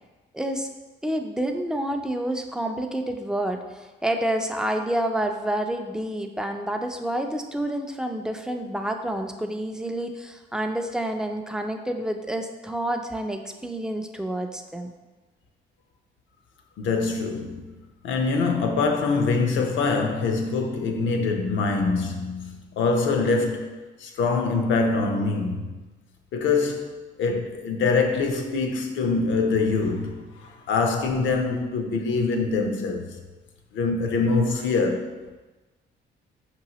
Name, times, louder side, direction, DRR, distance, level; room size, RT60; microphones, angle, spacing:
voice 1, 0.3-0.7 1.0-14.9, right 1 dB, 5° right, 0.4 m, -28 dB
voice 2, 16.8-17.6 18.0-25.8 26.3-33.1 33.7-35.2, left 4 dB, 75° left, 0.6 m, -24 dB
5.3 x 3.0 x 2.8 m
cardioid pair, 90°, 20 cm